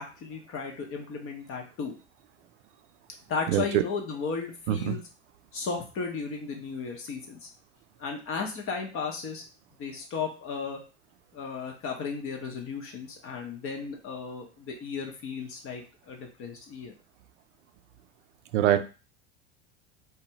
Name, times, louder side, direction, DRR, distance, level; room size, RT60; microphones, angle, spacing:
voice 1, 0.0-1.9 3.3-5.0 5.5-7.5 8.0-9.4 9.8-10.8 11.3-16.9, left 5 dB, 40° left, 1 dB, 0.7 m, -35 dB
voice 2, 3.5-3.6 4.7-4.9 18.5-18.8, right 12 dB, 75° right, 10 dB, 0.5 m, -23 dB
2.8 x 2.2 x 2.8 m, 0.34 s
hypercardioid pair, 85°, 36 cm